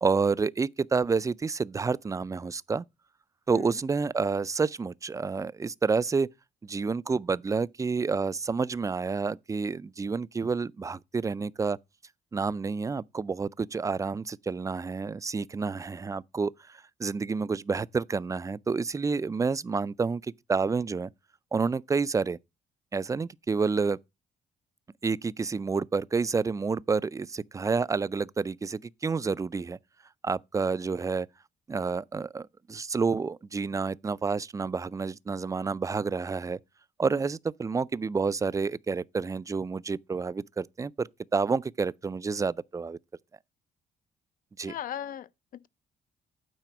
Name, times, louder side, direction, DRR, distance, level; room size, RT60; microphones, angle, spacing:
voice 1, 0.0-2.8 3.5-6.3 6.6-11.8 12.3-21.1 21.5-22.4 22.9-24.0 25.0-29.8 30.2-31.3 31.7-36.6 37.0-43.0 44.6-44.7, right 4 dB, 20° right, 0.4 m, -29 dB
voice 2, 44.6-45.7, left 10 dB, 60° left, 0.5 m, -38 dB
9.1 x 4.1 x 5.8 m
supercardioid pair, 75°, 17 cm